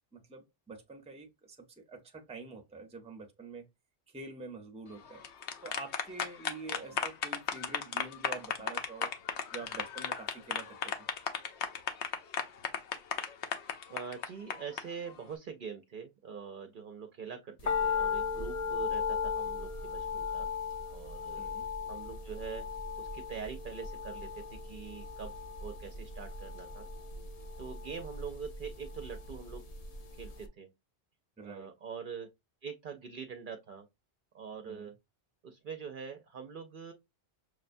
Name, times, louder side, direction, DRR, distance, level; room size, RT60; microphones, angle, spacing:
voice 1, 0.1-3.7 4.1-5.2 5.6-9.1 9.5-11.1 21.4-21.7 31.4-31.7 34.6-34.9, right 3 dB, 5° right, 0.5 m, -46 dB
sound 1, 5.1-14.8, left 7 dB, 80° left, 0.9 m, -35 dB
voice 2, 13.9-20.5 20.9-21.4 21.9-22.6 23.0-25.3 25.6-26.9 27.6-29.6 30.2-30.7 31.4-32.3 32.6-33.9 34.3-34.9 35.4-36.9, right 6 dB, 60° right, 0.6 m, -44 dB
sound 2, 17.6-29.9 30.2-30.3, left 5 dB, 50° left, 0.5 m, -36 dB
6.2 x 2.2 x 2.5 m
omnidirectional pair, 1.1 m